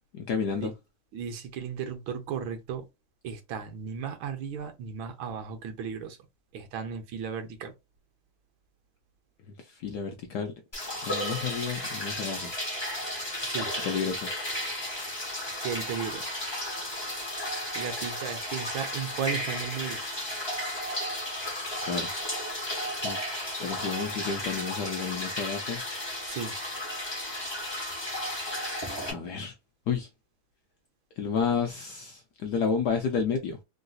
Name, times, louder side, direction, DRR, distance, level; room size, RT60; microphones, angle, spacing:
voice 1, 0.1-0.7 9.6-10.5 11.0-12.5 13.8-14.3 21.8-22.1 23.0-23.2 23.6-25.8 29.1-29.5 29.9-30.1 31.2-33.6, left 6 dB, 80° left, 0.9 m, -31 dB
voice 2, 1.1-2.8 3.2-6.2 6.5-7.7 13.4-13.7 15.6-16.3 17.7-20.0 26.3-26.6, right 7 dB, 80° right, 1.6 m, -35 dB
sound 1, 10.7-29.1, left 1 dB, 15° left, 0.9 m, -34 dB
3.8 x 2.5 x 2.3 m
omnidirectional pair, 2.2 m